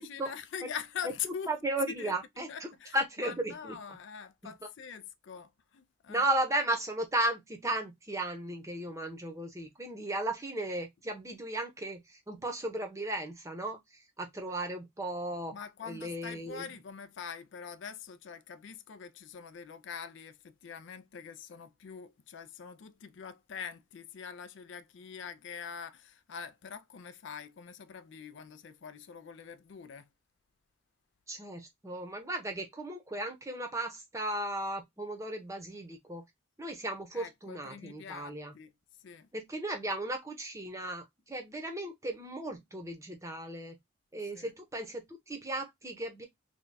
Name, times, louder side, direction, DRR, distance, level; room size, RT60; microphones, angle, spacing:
voice 1, 0.0-1.6 1.9-2.1 2.5-6.3 15.5-30.1 37.1-38.7 39.0-39.3 44.2-44.5, left 7 dB, 65° left, 0.4 m, -44 dB
voice 2, 1.5-2.7 2.9-3.8 4.4-4.5 6.1-13.8 14.2-15.6 15.9-16.6 31.3-36.2 36.6-38.5 39.3-43.7 44.1-46.3, right 1 dB, 15° right, 0.7 m, -35 dB
3.4 x 2.2 x 3.9 m
head